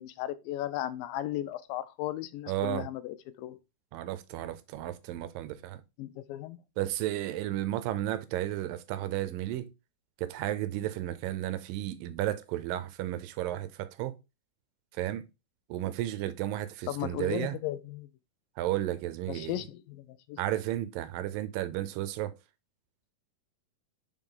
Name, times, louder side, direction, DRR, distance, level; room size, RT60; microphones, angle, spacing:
voice 1, 0.0-3.6 6.0-6.6 16.9-18.1 19.3-20.4, left 14 dB, 85° left, 2.2 m, -36 dB
voice 2, 2.5-2.9 3.9-5.8 6.8-9.7 10.2-14.1 14.9-15.3 15.7-17.6 18.6-19.6 20.4-22.3, right 13 dB, 80° right, 2.3 m, -33 dB
5.4 x 4.7 x 3.8 m
omnidirectional pair, 4.1 m